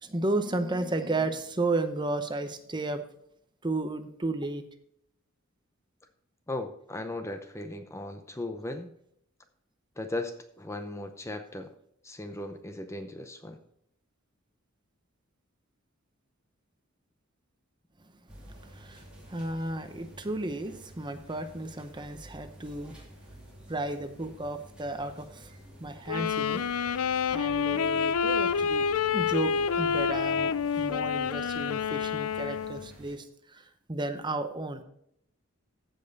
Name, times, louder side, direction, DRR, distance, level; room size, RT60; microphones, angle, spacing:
voice 1, 0.0-3.0 3.6-4.6 18.6-23.0 23.7-25.5 25.8-26.6 27.3-34.8, right 2 dB, 20° right, 8 dB, 0.8 m, -33 dB
voice 2, 6.5-8.9 10.0-11.7 12.0-13.6, left 2 dB, 15° left, 7 dB, 0.6 m, -37 dB
sound 1, 18.3-33.2, equal, 5° right, 3.1 m, -50 dB
Wind instrument woodwind instrument, 26.1-32.9, left 6 dB, 80° left, 0.4 m, -28 dB
15.0 x 5.4 x 4.0 m, 0.71 s
head